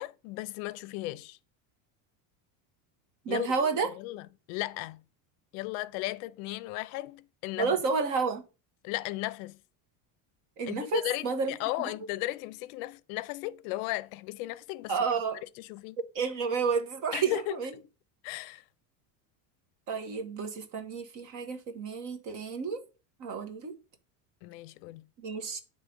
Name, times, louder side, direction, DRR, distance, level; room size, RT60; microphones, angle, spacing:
voice 1, 0.0-1.4 3.3-5.0 5.5-7.8 8.8-9.6 10.6-14.9 15.6-16.0 17.1-17.8 18.2-18.6 24.4-25.0, left 18 dB, 65° left, 0.6 m, -36 dB
voice 2, 3.2-3.9 7.6-8.4 10.6-11.9 14.9-15.4 16.1-17.7 19.9-22.8 23.2-23.7 25.2-25.6, right 5 dB, 45° right, 1.2 m, -31 dB
9.2 x 3.3 x 5.1 m
cardioid pair, 165°, 44 cm